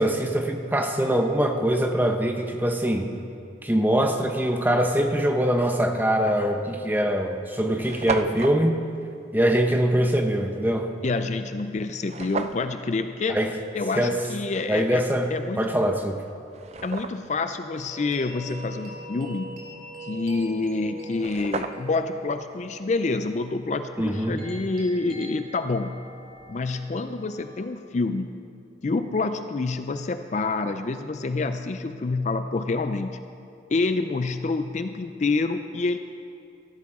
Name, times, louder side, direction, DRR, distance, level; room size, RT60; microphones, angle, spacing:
voice 1, 0.0-3.1 3.6-8.8 9.3-10.9 13.3-13.5 14.0-14.2 14.7-16.2 24.0-24.4, right 1 dB, 10° right, 4 dB, 0.8 m, -23 dB
sound 1, 6.2-6.4 7.1-7.2 7.4-7.5 7.7-8.6 12.0-12.7 15.6-15.7 16.3-17.4 20.8-20.9 21.1-22.1, right 4 dB, 35° right, 0.4 m, -33 dB
voice 2, 11.0-13.4 13.7-15.0 15.3-15.7 16.8-19.5 20.0-26.0 26.5-28.3 28.8-33.2 33.7-36.0, left 3 dB, 40° left, 9 dB, 0.4 m, -27 dB
sound 2, 17.7-27.6, right 2 dB, 55° right, 2.9 m, -43 dB
16.0 x 13.5 x 3.7 m, 2.5 s
head